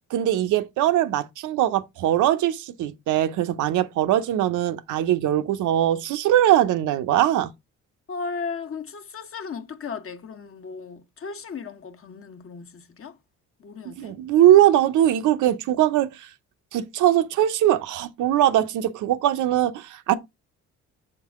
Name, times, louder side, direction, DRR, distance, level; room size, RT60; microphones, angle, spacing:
voice 1, 0.1-7.5 14.0-16.3 16.7-20.1, right 12 dB, 80° right, 0.7 m, -21 dB
voice 2, 8.1-13.2 13.6-14.2, left 5 dB, 45° left, 1.1 m, -36 dB
7.1 x 3.8 x 3.5 m
cardioid pair, 90°, 30 cm